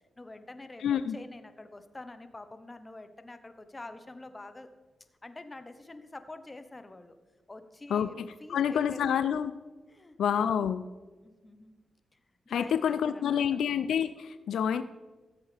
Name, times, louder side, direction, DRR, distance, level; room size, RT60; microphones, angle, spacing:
voice 1, 0.2-4.7 5.2-7.2 7.5-9.2 9.9-10.6 11.2-11.8 12.4-13.4, left 2 dB, 25° left, 10 dB, 0.9 m, -47 dB
voice 2, 0.8-1.2 7.9-9.5 10.2-10.8 12.5-14.8, left 8 dB, 85° left, 12 dB, 0.3 m, -28 dB
14.0 x 7.9 x 3.4 m, 1.3 s
cardioid pair, 65°, 0 cm